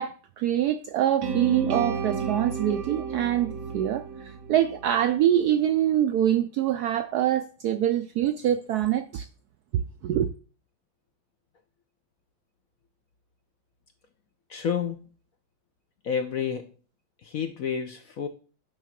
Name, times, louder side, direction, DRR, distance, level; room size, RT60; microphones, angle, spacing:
voice 1, 0.0-9.2 10.0-10.3, right 11 dB, 75° right, 0.9 m, -25 dB
sound 1, 1.2-5.3, right 5 dB, 60° right, 1.6 m, -32 dB
voice 2, 14.5-15.0 16.0-16.7 17.2-18.3, left 7 dB, 60° left, 0.9 m, -29 dB
10.0 x 3.7 x 5.8 m
omnidirectional pair, 2.1 m